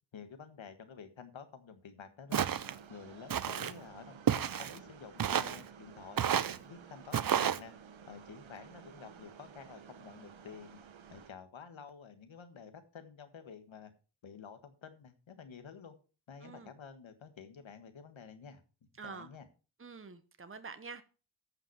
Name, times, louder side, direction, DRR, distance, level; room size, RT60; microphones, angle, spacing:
voice 1, 0.1-2.5 2.9-7.7 8.1-10.8 11.1-13.9 14.2-16.0 16.3-19.5, left 6 dB, 85° left, 9 dB, 1.7 m, -51 dB
Walk footsteps, 2.3-2.8 3.3-3.7 4.3-4.8 5.2-5.6 6.2-6.6 7.1-7.6, right 9 dB, 50° right, 0.6 m, -31 dB
sound 1, 2.4-11.3, right 7 dB, 85° right, 1.2 m, -54 dB
voice 2, 19.0-19.3 19.8-21.0, right 5 dB, 30° right, 10 dB, 1.1 m, -47 dB
14.5 x 5.9 x 4.7 m, 0.34 s
wide cardioid pair, 75°, 45 cm